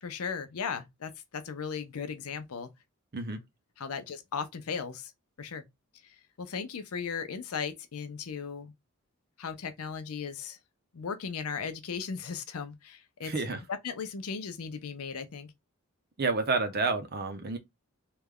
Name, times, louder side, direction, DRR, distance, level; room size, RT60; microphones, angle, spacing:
voice 1, 0.0-2.7 3.8-5.1 5.4-5.6 6.0-8.7 9.4-10.6 10.9-13.3 13.7-15.5, left 6 dB, 85° left, 0.6 m, -37 dB
voice 2, 13.2-13.6 16.2-17.6, right 3 dB, 45° right, 0.6 m, -29 dB
3.2 x 2.3 x 3.6 m
head